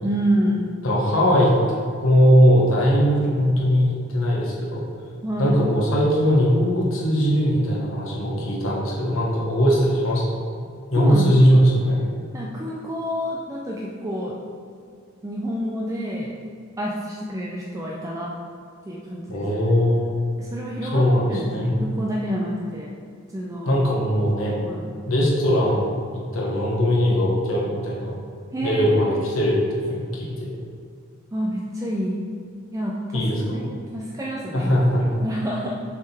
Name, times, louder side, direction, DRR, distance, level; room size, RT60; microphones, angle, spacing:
voice 1, 0.0-0.7 5.2-5.6 10.9-11.6 12.3-14.4 15.2-16.3 16.8-18.3 18.9-19.4 20.4-22.9 23.3-23.7 24.7-24.9 28.5-29.1 31.3-32.2 32.7-33.2 33.5-33.7 33.9-34.7 35.2-35.7, equal, 15° right, -3 dB, 0.4 m, -28 dB
voice 2, 0.8-4.8 5.4-10.2 10.9-12.0 19.3-20.1 20.9-21.8 23.7-24.6 25.1-28.2 28.6-30.5 33.1-33.6 34.5-35.0, equal, 85° left, -4 dB, 1.4 m, -20 dB
6.5 x 3.7 x 4.4 m, 2.3 s
head